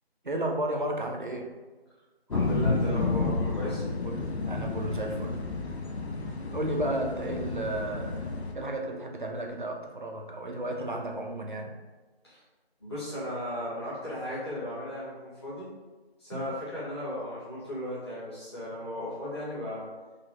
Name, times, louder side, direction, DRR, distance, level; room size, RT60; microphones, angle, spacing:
voice 1, 0.2-1.5 4.0-5.4 6.5-8.3 8.5-11.7 16.3-16.5, right 1 dB, 50° right, 2 dB, 0.5 m, -33 dB
sound 1, 2.3-8.5, left 3 dB, 90° left, 0.7 m, -31 dB
voice 2, 2.3-3.8 12.2-12.4 12.8-15.7 16.2-19.9, left 1 dB, 25° left, -12 dB, 1.4 m, -36 dB
3.9 x 2.7 x 2.7 m, 1.3 s
figure-of-eight pair, 170°, 32 cm